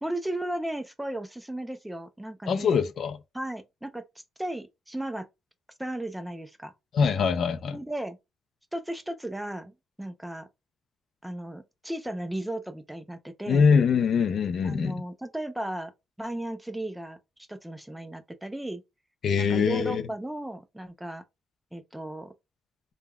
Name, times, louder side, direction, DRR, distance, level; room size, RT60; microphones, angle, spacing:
voice 1, 0.0-2.8 3.3-4.0 4.4-5.3 5.8-6.7 7.7-8.2 8.7-10.5 11.2-13.7 14.6-15.9 16.2-17.2 17.5-18.8 19.4-21.2 21.7-22.3, right 1 dB, 5° right, 0.4 m, -35 dB
voice 2, 2.5-3.2 6.9-7.8 13.5-15.0 19.2-20.0, left 6 dB, 60° left, 0.4 m, -23 dB
3.3 x 2.2 x 2.2 m
cardioid pair, 90°, 0 cm